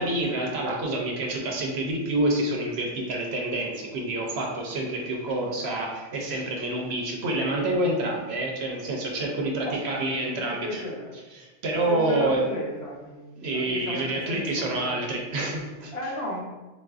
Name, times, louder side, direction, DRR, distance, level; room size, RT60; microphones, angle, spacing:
voice 1, 0.0-10.8 11.3-12.4 13.4-15.9, right 2 dB, 65° right, 0 dB, 0.8 m, -28 dB
voice 2, 9.6-11.1 11.9-14.9 15.9-16.4, left 1 dB, 60° left, -3 dB, 0.9 m, -34 dB
3.8 x 2.4 x 2.3 m, 1.2 s
omnidirectional pair, 1.3 m